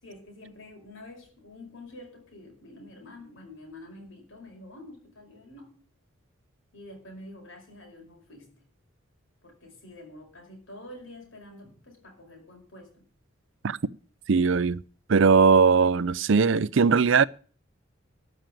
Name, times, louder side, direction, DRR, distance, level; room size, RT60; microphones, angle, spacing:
voice 1, 0.0-5.8 6.7-8.5 9.4-13.1, left 1 dB, 65° left, 5.5 m, -47 dB
voice 2, 14.3-14.8 15.1-17.2, right 5 dB, 65° right, 0.5 m, -20 dB
13.0 x 6.2 x 9.0 m
head